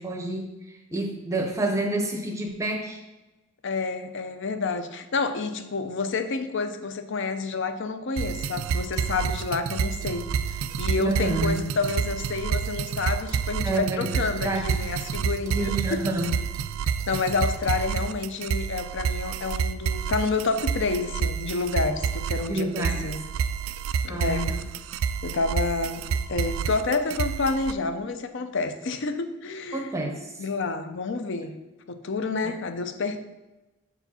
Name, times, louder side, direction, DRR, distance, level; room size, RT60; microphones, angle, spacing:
voice 1, 0.0-3.0 11.0-11.6 13.6-14.1 14.4-14.8 15.5-16.4 22.5-23.0 24.1-24.6 29.7-30.3 32.4-32.5, right 1 dB, 15° right, 2 dB, 0.6 m, -28 dB
voice 2, 3.6-16.1 17.1-23.2 24.0-24.5 25.2-26.0 26.3-30.0 30.4-31.6 31.9-33.2, left 4 dB, 60° left, 9 dB, 0.5 m, -29 dB
sound 1, 8.2-27.7, right 6 dB, 75° right, 0.3 m, -29 dB
6.8 x 4.8 x 4.2 m, 1.1 s
head